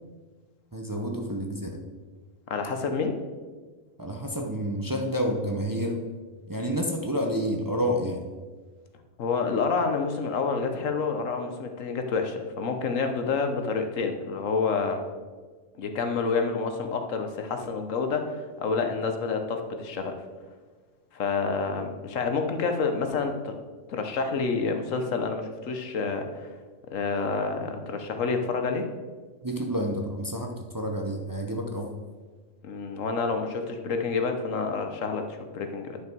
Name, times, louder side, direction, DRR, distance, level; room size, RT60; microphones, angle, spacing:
voice 1, 0.7-1.8 4.0-6.0 6.5-8.2 29.4-31.9, equal, 20° right, 1 dB, 0.7 m, -29 dB
voice 2, 2.5-3.2 9.2-15.0 15.8-20.2 21.1-23.6 23.9-26.5 26.9-28.9 32.6-36.0, left 4 dB, 85° left, 6 dB, 1.3 m, -28 dB
9.9 x 5.8 x 4.6 m, 1.4 s
omnidirectional pair, 1.3 m